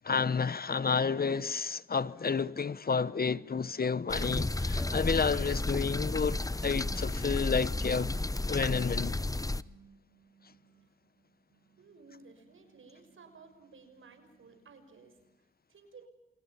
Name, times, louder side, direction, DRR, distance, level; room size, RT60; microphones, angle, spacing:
voice 1, 0.0-8.2 8.5-9.2, left 5 dB, 45° left, 1.0 m, -30 dB
sound 1, 4.1-9.6, left 2 dB, 15° left, 0.9 m, -32 dB
sound 2, 9.3-15.4, right 6 dB, 90° right, 6.4 m, -64 dB
voice 2, 11.8-16.1, right 4 dB, 70° right, 6.0 m, -56 dB
28.5 x 24.5 x 5.8 m
supercardioid pair, 40°, 21 cm